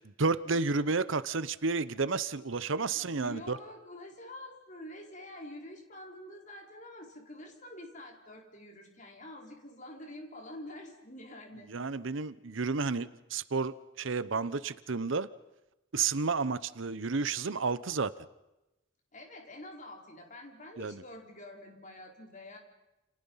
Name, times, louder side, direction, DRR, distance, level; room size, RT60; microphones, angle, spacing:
voice 1, 0.2-3.6 11.7-15.3 15.9-18.1 20.8-20.9, right 4 dB, 65° right, 15 dB, 0.9 m, -31 dB
voice 2, 2.9-11.7 19.1-22.6, left 1 dB, 40° left, 1 dB, 5.0 m, -47 dB
29.5 x 29.0 x 5.7 m, 0.97 s
head